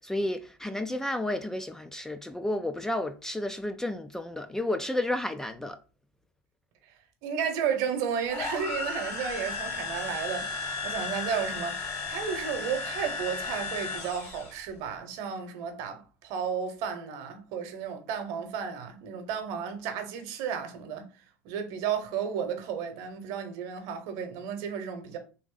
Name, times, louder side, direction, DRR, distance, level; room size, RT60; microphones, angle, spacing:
voice 1, 0.0-5.8, left 1 dB, 5° left, 0.4 m, -31 dB
voice 2, 7.2-21.1 21.4-25.2, right 7 dB, 60° right, 0.9 m, -33 dB
sound 1, 8.3-14.6, left 4 dB, 40° left, 1.5 m, -35 dB
3.5 x 2.6 x 3.8 m
hypercardioid pair, 85°, 7 cm